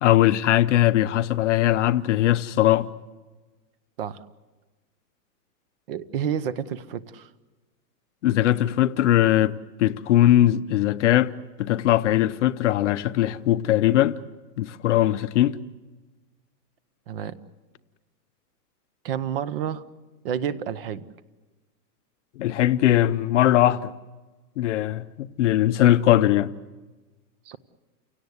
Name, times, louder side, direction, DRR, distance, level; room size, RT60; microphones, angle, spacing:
voice 1, 0.0-2.9 8.2-11.3 11.6-14.2 14.6-15.6 22.4-23.9 24.6-26.5, left 13 dB, 45° left, 0.7 m, -20 dB
voice 2, 5.9-7.3 17.1-17.4 19.0-19.8 20.2-21.0 27.5-27.6, right 8 dB, 35° right, 0.8 m, -29 dB
30.0 x 17.5 x 8.0 m
supercardioid pair, 170°, 49 cm